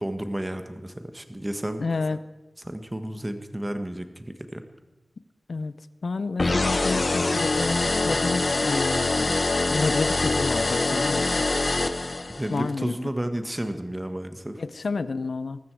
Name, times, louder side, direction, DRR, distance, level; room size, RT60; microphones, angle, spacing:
voice 1, 0.0-1.8 2.6-4.6 11.7-11.8 12.3-14.6, right 1 dB, 15° right, 8 dB, 1.5 m, -32 dB
voice 2, 1.8-2.2 5.5-5.7 6.0-9.3 9.7-11.5 12.5-12.9 14.6-15.6, left 4 dB, 80° left, 15 dB, 0.7 m, -29 dB
sound 1, 6.4-12.6, left 2 dB, 50° left, 1.1 m, -24 dB
19.5 x 14.5 x 4.8 m, 1.1 s
wide cardioid pair, 80°, 0 cm